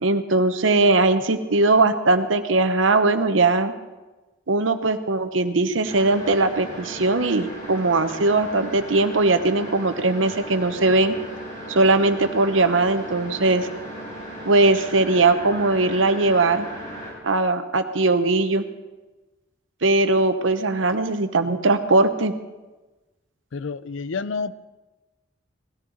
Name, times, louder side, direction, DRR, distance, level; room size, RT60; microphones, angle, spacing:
voice 1, 0.0-3.7 4.5-11.1 11.7-13.7 14.4-16.7 17.2-18.6 19.8-22.3, right 2 dB, 85° right, 9 dB, 1.0 m, -20 dB
sound 1, 5.8-17.1, equal, 40° left, 5.2 m, -37 dB
voice 2, 23.5-24.5, left 4 dB, 80° left, 16 dB, 0.5 m, -29 dB
18.5 x 14.0 x 4.0 m, 1.2 s
head